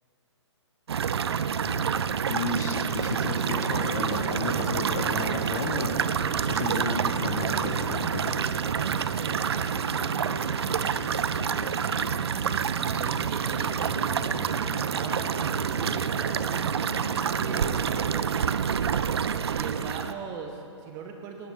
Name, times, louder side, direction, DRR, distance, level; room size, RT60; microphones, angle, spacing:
sound 1, 0.9-20.1, right 7 dB, 55° right, 0.5 m, -28 dB
voice 1, 1.6-1.9 2.3-6.0 6.5-8.4, left 4 dB, 35° left, 5 dB, 1.1 m, -33 dB
sound 2, 3.5-18.1, left 9 dB, 10° left, 0.3 m, -43 dB
voice 2, 9.0-11.6 12.7-16.7 17.4-18.7 19.5-21.5, right 5 dB, 20° right, 3 dB, 0.8 m, -40 dB
18.0 x 9.4 x 4.1 m, 2.6 s
figure-of-eight pair, 130°, 16 cm